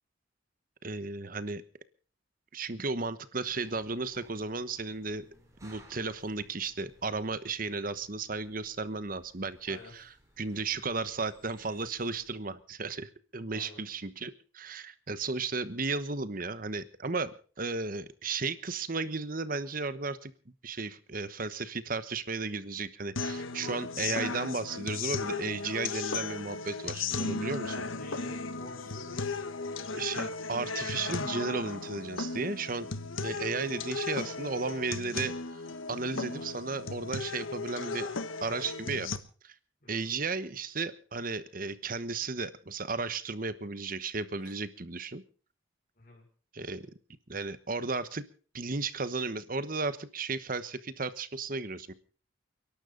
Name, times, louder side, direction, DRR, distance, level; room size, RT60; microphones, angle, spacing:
voice 1, 0.8-1.6 2.5-5.2 5.6-17.3 17.6-20.3 20.6-27.8 29.9-32.9 33.2-38.1 38.4-39.1 39.4-39.5 39.9-45.2 46.5-46.9 47.3-48.2 48.5-51.9, right 4 dB, 45° right, 14 dB, 1.1 m, -34 dB
sound 1, 3.4-12.6, right 1 dB, 15° right, 4.5 m, -61 dB
voice 2, 9.7-10.0 13.5-13.8 23.5-23.7 27.8-30.0 36.3-36.6 37.8-38.7 39.8-40.1 44.4-44.5 46.0-46.2, left 2 dB, 45° left, -2 dB, 5.9 m, -49 dB
sound 2, 23.2-39.2, left 4 dB, 90° left, 1.3 m, -36 dB
29.5 x 12.0 x 3.9 m, 0.41 s
head